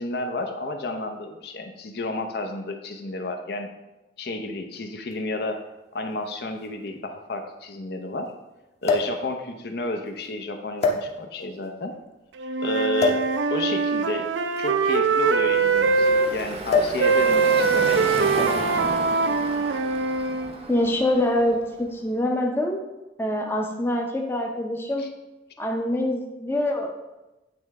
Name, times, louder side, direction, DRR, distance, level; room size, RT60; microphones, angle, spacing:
voice 1, 0.0-3.7 4.2-5.6 5.9-8.3 8.8-11.9 12.6-13.2 13.5-14.3 14.6-18.3 25.0-25.1, left 2 dB, 60° left, 5 dB, 0.7 m, -31 dB
sound 1, 5.1-5.2 6.3-6.4 6.6-6.7 8.8-9.2 10.1-10.2 10.8-11.5 13.0-13.3 14.4-16.1 16.7-17.1 17.3-17.6 18.4-18.7 19.7-20.0, left 3 dB, 35° left, 0.9 m, -25 dB
Wind instrument woodwind instrument, 12.4-16.3 17.0-20.5, right 4 dB, 75° right, 0.4 m, -22 dB
Car passing by / Traffic noise roadway noise, 14.9-21.9, right 2 dB, 35° right, 0.6 m, -34 dB
voice 2, 20.7-22.8 23.2-25.0 25.6-27.0, left 1 dB, 15° left, 1 dB, 0.6 m, -25 dB
8.7 x 3.2 x 4.7 m, 1.0 s
head